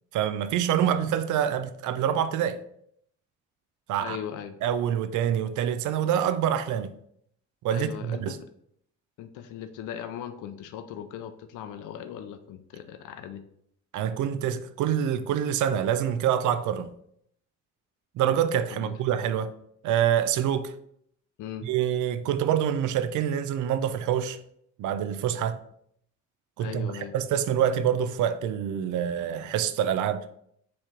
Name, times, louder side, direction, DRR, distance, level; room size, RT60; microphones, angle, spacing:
voice 1, 0.1-2.6 3.9-4.2 4.6-6.9 7.6-8.4 13.9-16.9 18.2-19.5 19.8-20.7 21.6-24.4 24.8-25.6 26.6-30.3, right 9 dB, 80° right, 0.5 m, -26 dB
voice 2, 4.0-4.6 7.7-8.4 9.2-13.4 18.7-19.0 21.4-21.7 26.6-27.2, left 9 dB, 85° left, 0.5 m, -39 dB
4.4 x 3.2 x 3.7 m
cardioid pair, 90°, 30 cm